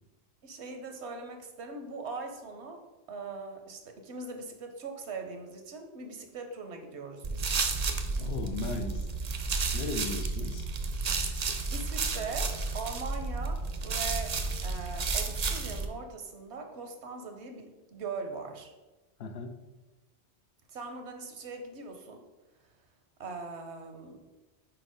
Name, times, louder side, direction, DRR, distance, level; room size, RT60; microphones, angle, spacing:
voice 1, 0.4-2.8 3.1-7.5 11.7-14.4 14.6-18.7 20.7-22.2 23.2-24.2, right 4 dB, 80° right, 5 dB, 1.1 m, -41 dB
sound 1, 7.2-15.9, right 4 dB, 50° right, 0.5 m, -32 dB
voice 2, 8.2-9.0 9.7-10.7 19.2-19.6, left 3 dB, 70° left, 7 dB, 0.8 m, -36 dB
4.5 x 4.5 x 5.1 m, 1.1 s
omnidirectional pair, 1.1 m